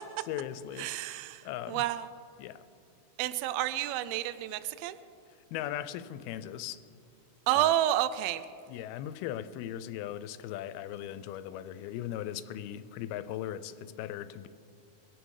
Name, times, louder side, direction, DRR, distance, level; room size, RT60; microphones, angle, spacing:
voice 1, 0.3-0.9 1.5-1.8 2.4-2.6 5.5-6.8 7.6-7.8 8.7-14.5, left 11 dB, 85° left, 2.5 m, -38 dB
voice 2, 0.8-2.1 3.2-5.0 7.5-8.4, right 13 dB, 80° right, 2.3 m, -30 dB
23.0 x 9.1 x 4.8 m
omnidirectional pair, 4.4 m